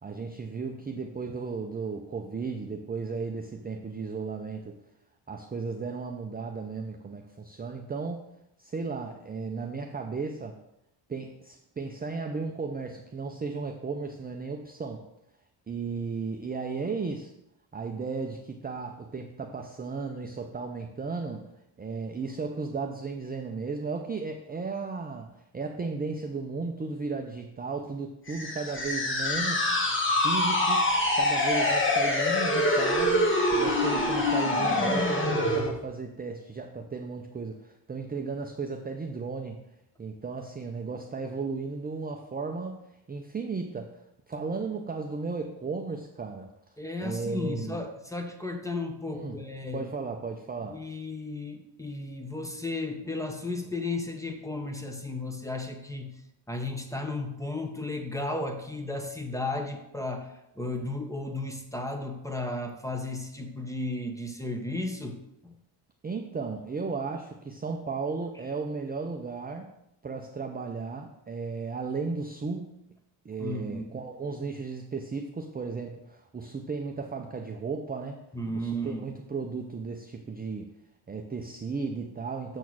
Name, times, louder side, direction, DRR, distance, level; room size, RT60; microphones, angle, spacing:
voice 1, 0.0-4.8 5.3-8.3 8.6-10.6 11.1-15.1 15.7-17.3 17.7-21.5 21.8-29.8 30.1-39.6 40.0-42.8 43.1-44.0 44.3-46.5 47.0-47.8 49.1-49.4 49.7-50.8 66.0-69.8 70.0-72.8 73.2-78.2 78.5-80.7 81.1-82.6, right 4 dB, 20° right, 3 dB, 0.5 m, -35 dB
sound 1, 28.3-35.7, left 1 dB, 25° left, 1.4 m, -25 dB
voice 2, 46.8-49.9 50.7-56.2 56.5-65.5 73.4-73.9 78.3-79.1, left 2 dB, 5° left, 5 dB, 0.9 m, -34 dB
7.0 x 4.3 x 6.1 m, 0.82 s
cardioid pair, 120°, 50 cm